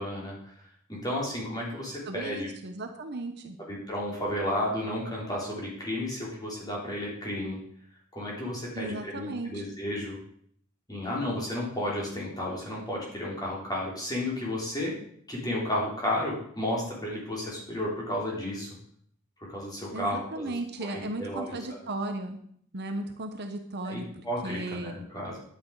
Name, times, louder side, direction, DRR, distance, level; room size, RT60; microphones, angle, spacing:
voice 1, 0.0-2.5 3.6-7.6 8.1-10.2 10.9-14.9 15.3-18.7 19.4-20.5 20.8-21.6 23.8-25.4, left 1 dB, 20° left, -4 dB, 3.8 m, -33 dB
voice 2, 2.1-3.6 8.7-9.6 19.9-22.4 22.7-24.1 24.4-24.9, right 2 dB, 50° right, 5 dB, 1.1 m, -35 dB
11.0 x 8.7 x 4.9 m, 0.63 s
head